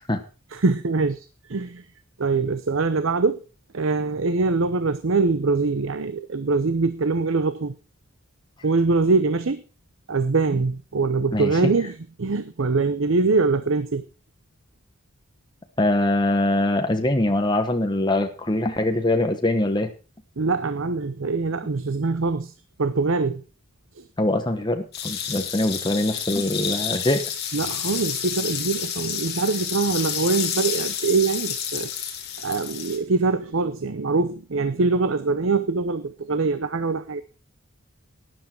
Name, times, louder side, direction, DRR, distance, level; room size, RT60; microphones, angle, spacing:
voice 1, 0.5-1.8 2.2-3.4 3.7-7.7 8.6-9.6 10.1-14.0 20.4-22.5 22.8-23.4 27.5-31.9 32.4-37.2, right 3 dB, 65° right, 0.7 m, -23 dB
voice 2, 11.3-11.7 15.8-19.9 24.2-27.2, left 1 dB, 20° left, 1.2 m, -23 dB
sound 1, 24.9-33.0, left 8 dB, 50° left, 2.6 m, -30 dB
12.5 x 10.5 x 4.5 m
head